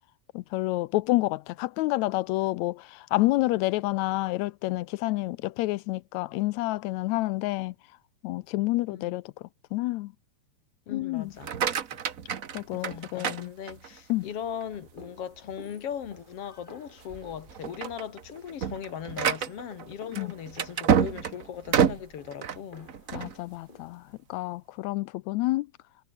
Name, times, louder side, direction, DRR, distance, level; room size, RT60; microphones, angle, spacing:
voice 1, 0.4-7.7 8.2-9.2 9.7-10.1 10.9-11.3 12.5-13.5 14.1-14.3 20.2-20.3 23.1-24.0 24.3-25.7, left 19 dB, 80° left, 1.8 m, -28 dB
voice 2, 10.9-11.5 12.7-23.0, left 8 dB, 55° left, 2.5 m, -39 dB
sound 1, 11.3-14.1 14.6-15.1 15.5-15.6 16.0-16.2 16.9-17.1 17.5-23.4, right 7 dB, 75° right, 0.7 m, -28 dB
sound 2, 14.5-23.8, left 2 dB, 15° left, 3.5 m, -54 dB
omnidirectional pair, 3.4 m